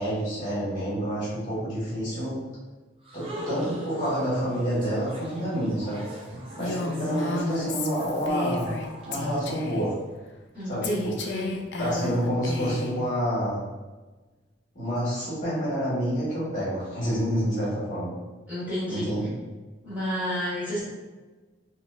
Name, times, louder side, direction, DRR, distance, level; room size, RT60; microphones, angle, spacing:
voice 1, 0.0-2.4 3.1-8.6 9.0-9.9 10.6-11.1 11.8-13.6 14.7-18.2 18.9-19.3, equal, 45° left, -10 dB, 1.4 m, -28 dB
sound 1, 3.0-9.9, left 1 dB, 30° right, 0.5 m, -42 dB
Female speech woman speaking, 6.6-8.9 9.1-9.9 10.8-13.0, left 2 dB, 75° left, 0.4 m, -32 dB
voice 2, 10.5-11.6 18.5-19.1 19.8-20.8, equal, 10° right, -12 dB, 1.2 m, -30 dB
3.8 x 2.0 x 2.4 m, 1.2 s
head